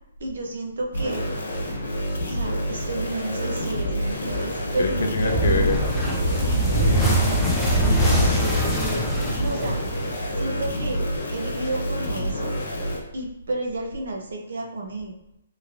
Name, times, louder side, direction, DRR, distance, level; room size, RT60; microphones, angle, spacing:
voice 1, 0.2-1.2 2.3-5.4 6.7-6.9 9.4-9.8 10.4-11.0 11.3-12.5 13.1-15.1, right 2 dB, 65° right, 1 dB, 0.6 m, -31 dB
sound 1, 0.9-13.0, equal, 80° left, 1.2 m, -28 dB
sound 2, 3.7-8.3, left 2 dB, 85° right, 1.0 m, -35 dB
voice 2, 4.8-5.9 6.7-7.3 7.8-9.1, left 4 dB, 65° left, 3 dB, 0.5 m, -28 dB
sound 3, 5.2-10.4, right 1 dB, 5° left, 0.4 m, -22 dB
3.0 x 2.8 x 2.5 m, 0.83 s
hypercardioid pair, 170°, 0 cm